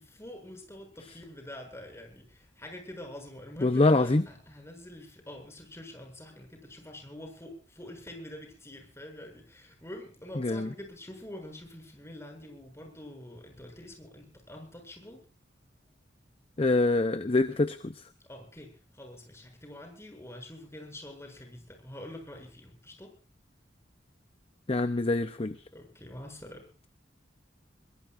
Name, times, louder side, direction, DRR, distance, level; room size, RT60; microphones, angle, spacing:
voice 1, 0.0-15.2 18.3-23.1 25.7-26.6, left 1 dB, 15° left, 3 dB, 7.4 m, -46 dB
voice 2, 3.6-4.2 10.4-10.7 16.6-18.0 24.7-25.6, left 2 dB, 30° left, 11 dB, 0.7 m, -25 dB
22.5 x 22.0 x 2.6 m, 0.36 s
head